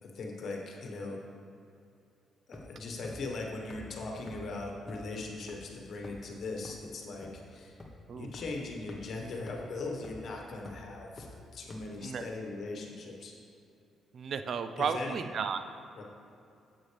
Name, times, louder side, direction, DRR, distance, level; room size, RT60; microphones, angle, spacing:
voice 1, 0.0-1.2 2.5-7.8 8.1-11.3 11.5-13.3 14.8-15.2 16.0-16.1, left 3 dB, 60° left, 0 dB, 1.4 m, -39 dB
sound 1, 2.5-2.8 3.0-3.1 3.7-3.8 4.3-4.4 4.9-5.0 5.5-5.6 6.0-6.3 6.6-6.7 7.2-7.3 7.8-7.9 8.3-8.4 8.9-9.0 9.5-9.6 10.0-10.3 10.6-10.7 11.2-11.3 11.7-11.8, left 2 dB, 20° left, 1.3 m, -46 dB
voice 2, 14.1-15.6, right 6 dB, 55° right, 9 dB, 0.5 m, -33 dB
9.2 x 7.8 x 3.4 m, 2.5 s
cardioid pair, 90°, 0 cm